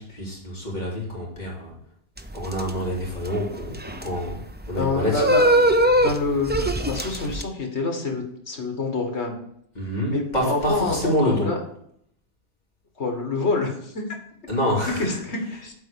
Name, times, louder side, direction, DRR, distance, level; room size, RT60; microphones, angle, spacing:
voice 1, 0.0-1.7 2.3-4.4 4.7-5.3 9.7-11.5 14.5-15.2, equal, 40° left, -5 dB, 3.2 m, -27 dB
sound 1, 2.2-7.4, right 1 dB, 15° right, 0.4 m, -22 dB
voice 2, 4.8-9.4 10.1-11.6 13.0-14.0 14.8-15.7, left 3 dB, 70° left, 3 dB, 2.0 m, -27 dB
7.9 x 4.4 x 6.9 m, 0.70 s
omnidirectional pair, 1.2 m